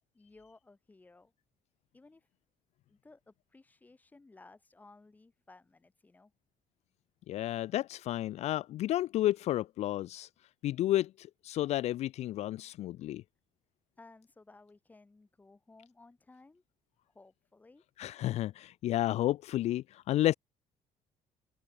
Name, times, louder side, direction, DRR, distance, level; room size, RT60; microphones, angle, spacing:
voice 1, 0.1-1.3 1.9-2.3 2.9-6.3 14.0-16.6 17.1-17.8, left 3 dB, 15° left, 5.7 m, -58 dB
voice 2, 7.3-10.3 10.6-13.2 18.0-20.3, left 14 dB, 60° left, 0.6 m, -31 dB
open air
cardioid pair, 165°, 12 cm